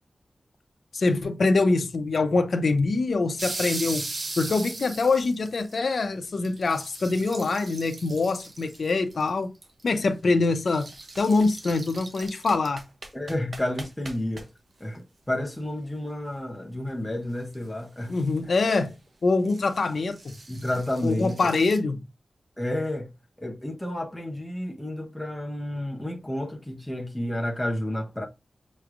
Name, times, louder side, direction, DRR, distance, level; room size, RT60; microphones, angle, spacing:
voice 1, 0.9-4.1 4.4-9.5 9.8-10.9 11.2-12.8 18.1-18.9 19.2-20.4 21.0-22.0, left 3 dB, 75° left, 0.6 m, -24 dB
sound 1, 3.4-5.9 6.2-6.3 6.4-9.3 9.6-9.9 10.5-14.4 17.4-17.5 18.1-18.2 18.6-18.7 19.5-21.8, right 2 dB, 60° right, 1.0 m, -38 dB
voice 2, 13.1-14.5 14.8-18.2 20.5-21.5 22.6-23.1 23.4-28.3, left 1 dB, 10° left, 0.8 m, -31 dB
6.0 x 3.1 x 2.4 m
wide cardioid pair, 80°, 0 cm